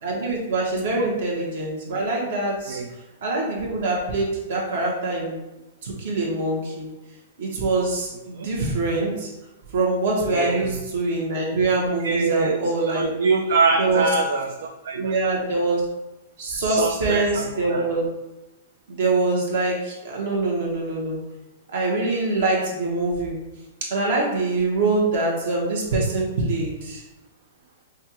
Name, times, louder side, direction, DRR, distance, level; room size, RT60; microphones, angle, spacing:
voice 1, 0.0-2.8 3.2-5.3 5.8-6.9 7.4-9.3 9.7-13.1 13.8-14.0 14.9-15.8 16.4-18.1 18.9-21.2 21.7-23.3 23.9-27.0, right 2 dB, 55° right, -2 dB, 1.4 m, -24 dB
voice 2, 10.3-10.7 12.0-12.6 12.9-15.1 16.6-17.9, right 4 dB, 75° right, 1 dB, 0.4 m, -24 dB
5.6 x 2.5 x 2.9 m, 1.0 s
hypercardioid pair, 165°, 0 cm